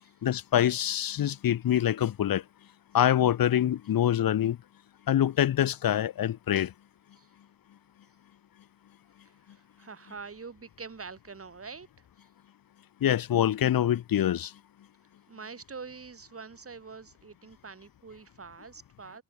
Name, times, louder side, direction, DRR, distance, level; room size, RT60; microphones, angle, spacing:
voice 1, 0.2-2.4 2.9-4.6 5.1-6.7 13.0-14.5, left 11 dB, 70° left, 1.3 m, -25 dB
voice 2, 9.2-12.3 15.3-19.2, right 5 dB, 40° right, 6.5 m, -45 dB
cardioid pair, 90°, 36 cm